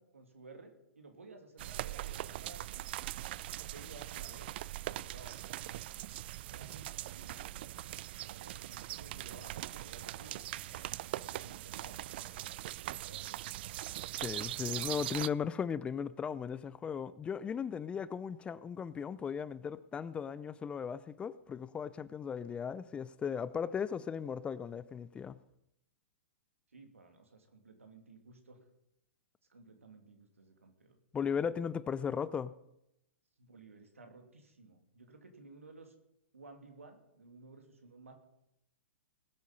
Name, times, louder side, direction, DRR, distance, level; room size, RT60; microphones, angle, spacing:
voice 1, 0.0-3.1 3.6-5.8 6.5-10.7 11.0-13.6 26.7-28.6 29.5-31.0 33.4-35.9 36.3-38.1, right 3 dB, 80° right, 2.8 m, -56 dB
sound 1, 1.6-15.3, right 15 dB, 50° right, 0.4 m, -41 dB
voice 2, 14.2-25.4 31.1-32.5, left 7 dB, 15° left, 0.5 m, -37 dB
20.0 x 8.4 x 5.5 m
figure-of-eight pair, 115°, 7 cm